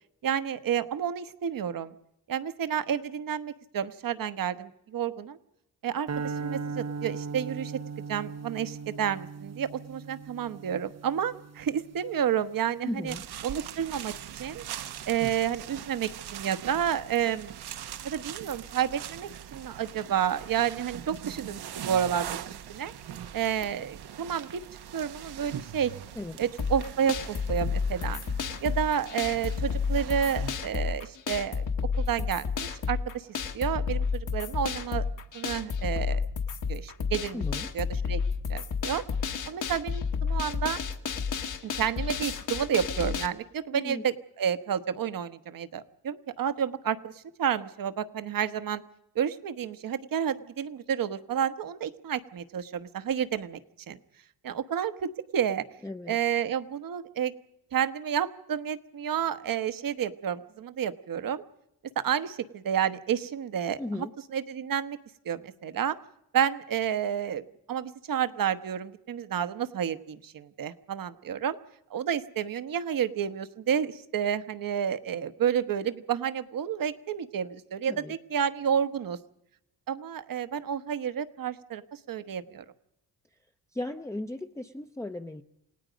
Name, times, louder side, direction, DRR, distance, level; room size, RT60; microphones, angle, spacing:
voice 1, 0.2-1.9 2.3-5.4 5.8-7.7 8.1-13.1 13.4-14.6 15.1-17.5 18.0-22.9 23.3-24.6 24.9-25.9 26.4-28.2 28.6-31.7 32.0-35.0 35.3-36.2 36.7-37.4 37.7-38.2 38.5-39.0 39.5-40.8 41.6-48.8 49.1-53.6 53.9-54.0 54.4-55.6 56.1-57.3 57.7-61.4 62.0-64.1 64.3-65.0 65.2-66.0 66.3-67.4 67.7-71.6 71.9-79.2 79.9-81.8 82.1-82.6, right 8 dB, 60° right, 13 dB, 1.2 m, -30 dB
sound 1, 6.1-12.4, right 5 dB, 45° right, 0.8 m, -38 dB
voice 2, 12.8-13.2 26.1-26.4 37.3-37.7 43.7-44.0 55.8-56.2 63.8-64.1 77.9-78.1 83.7-85.4, left 2 dB, 10° left, 4 dB, 0.7 m, -36 dB
sound 2, 13.1-30.5, right 10 dB, 80° right, 1.1 m, -41 dB
sound 3, 26.6-43.3, left 5 dB, 50° left, 1.5 m, -31 dB
28.5 x 18.0 x 5.2 m, 0.81 s
cardioid pair, 110°, 38 cm